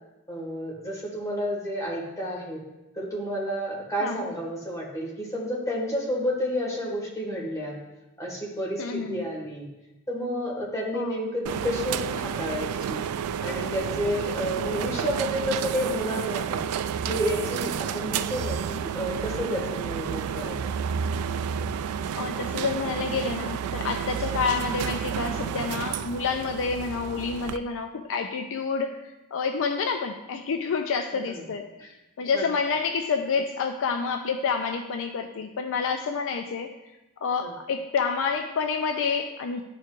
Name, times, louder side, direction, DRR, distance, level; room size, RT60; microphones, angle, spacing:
voice 1, 0.3-2.6 2.9-7.8 8.2-9.7 10.1-13.1 13.4-16.7 17.1-20.6 31.3-31.4 31.8-31.9 32.3-32.5 37.4-37.5, equal, 15° left, -4 dB, 1.7 m, -30 dB
voice 2, 4.0-4.3 8.8-9.2 10.9-11.2 22.2-31.7 32.2-36.7 37.2-39.6, left 5 dB, 65° left, 6 dB, 0.4 m, -28 dB
sound 1, 11.5-27.6, right 8 dB, 80° right, 0.3 m, -30 dB
11.5 x 4.5 x 2.5 m, 0.98 s
head